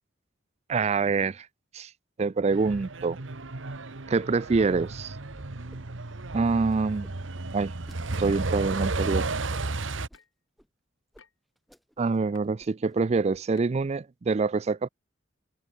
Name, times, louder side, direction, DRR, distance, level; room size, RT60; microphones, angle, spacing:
voice 1, 0.7-1.5 1.7-1.9 2.2-3.2 4.1-5.2 6.3-7.1 7.5-7.7 8.2-9.3 12.0-14.9, right 4 dB, 35° right, 0.4 m, -25 dB
Truck, 2.5-10.1, right 3 dB, 70° right, 1.3 m, -33 dB
sound 1, 5.4-5.8 6.1-8.0 8.5-8.9 9.5-10.2 10.6-10.7 11.1-11.2 11.6-12.2 12.4-13.0 13.3-13.7, equal, ahead, 5.8 m, -56 dB
sound 2, 9.0-9.1 10.1-10.4 11.2-11.4 12.3-12.4 13.6-13.7, left 6 dB, 85° left, 6.7 m, -56 dB
head